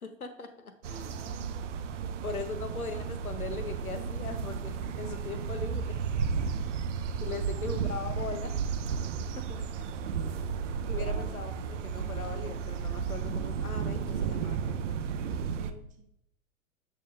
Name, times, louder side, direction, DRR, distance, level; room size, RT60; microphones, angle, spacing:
voice 1, 0.0-1.4 2.2-6.0 7.2-8.6 9.3-10.0 10.9-15.0, left 4 dB, 85° left, 7 dB, 1.0 m, -40 dB
sound 1, 0.8-15.7, right 6 dB, 60° right, 0.6 m, -33 dB
voice 2, 0.9-2.4 7.3-7.4 10.7-11.4 15.4-16.1, right 3 dB, 20° right, 3 dB, 0.9 m, -50 dB
7.7 x 6.0 x 3.2 m, 0.72 s
figure-of-eight pair, 95°, 42 cm